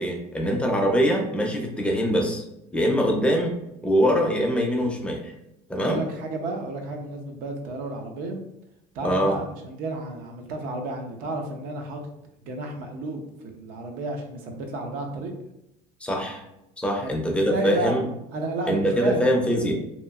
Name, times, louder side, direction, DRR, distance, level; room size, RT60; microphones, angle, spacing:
voice 1, 0.0-2.4 2.7-3.6 3.8-5.3 5.7-6.0 9.0-9.4 16.0-16.4 16.8-18.1 18.7-19.7, equal, 5° left, 1 dB, 0.5 m, -23 dB
voice 2, 5.8-8.4 8.9-12.0 12.4-15.3 17.0-18.0 18.3-19.2 19.6-19.7, right 2 dB, 70° right, 3 dB, 0.6 m, -32 dB
2.9 x 2.4 x 2.3 m, 0.86 s
cardioid pair, 115°, 16 cm